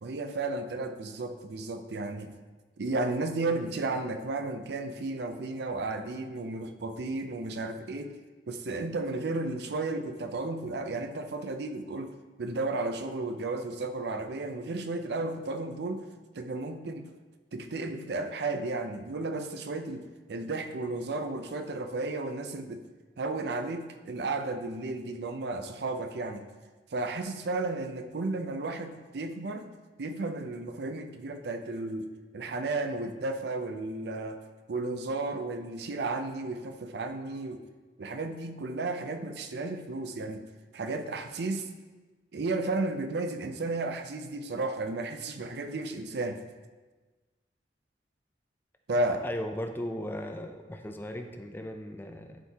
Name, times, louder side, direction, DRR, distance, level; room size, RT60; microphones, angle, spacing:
voice 1, 0.0-2.3 2.8-8.1 8.5-16.1 16.3-17.1 17.5-22.8 23.2-26.5 26.9-29.7 30.0-32.1 32.3-34.4 34.7-37.6 38.0-40.4 40.7-41.7 42.3-46.4 48.9-49.2, right 2 dB, 65° right, 7 dB, 0.5 m, -33 dB
voice 2, 49.1-52.4, equal, 10° left, 5 dB, 0.5 m, -37 dB
11.5 x 4.6 x 2.8 m, 1.3 s
head